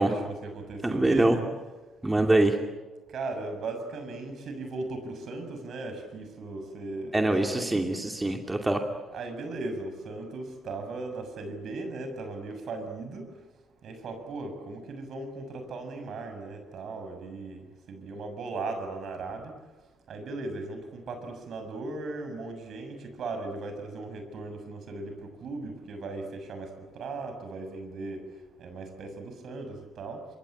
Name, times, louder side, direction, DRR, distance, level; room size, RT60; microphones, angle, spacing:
voice 1, 0.0-1.4 3.1-7.8 9.1-13.2 13.8-17.6 17.9-19.5 20.1-25.1 25.4-28.2 28.6-30.2, right 3 dB, 65° right, 6 dB, 6.8 m, -37 dB
voice 2, 0.8-1.4 2.0-2.6 7.1-8.8, right 2 dB, 15° right, 4 dB, 2.6 m, -24 dB
27.5 x 23.0 x 8.8 m, 1.2 s
cardioid pair, 90°, 0 cm